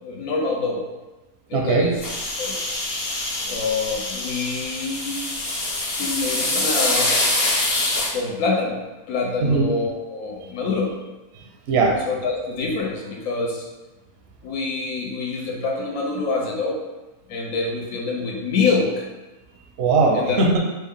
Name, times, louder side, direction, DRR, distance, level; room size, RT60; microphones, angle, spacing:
voice 1, 0.0-0.8 1.5-2.0 2.4-2.6 3.5-5.3 6.0-7.3 8.1-10.9 12.1-13.7 14.4-16.8 17.3-19.1 20.1-20.4, left 4 dB, 75° left, -1 dB, 1.2 m, -26 dB
voice 2, 1.5-2.0 9.4-9.7 10.4-10.5 11.3-12.0 19.8-20.6, right 3 dB, 60° right, 0 dB, 0.7 m, -20 dB
sound 1, 2.0-8.1, left 2 dB, 50° left, 0.9 m, -25 dB
4.4 x 2.2 x 3.5 m, 1.1 s
omnidirectional pair, 1.5 m